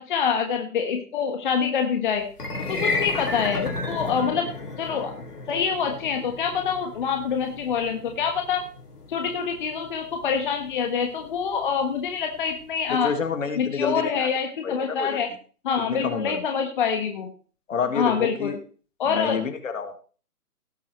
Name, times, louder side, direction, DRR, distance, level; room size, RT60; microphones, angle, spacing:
voice 1, 0.0-2.2 2.6-4.5 4.8-5.1 5.5-8.6 9.1-13.1 13.6-15.3 15.6-17.3 17.9-18.6 19.0-19.4, left 6 dB, 35° left, 4 dB, 1.3 m, -26 dB
sound 1, 2.3-12.6, left 3 dB, 80° left, 3.0 m, -34 dB
voice 2, 12.9-14.3 14.6-15.2 15.8-16.4 17.7-18.6 19.1-19.9, left 6 dB, 55° left, 8 dB, 2.0 m, -29 dB
17.5 x 7.5 x 3.1 m, 0.40 s
figure-of-eight pair, 145°, 46 cm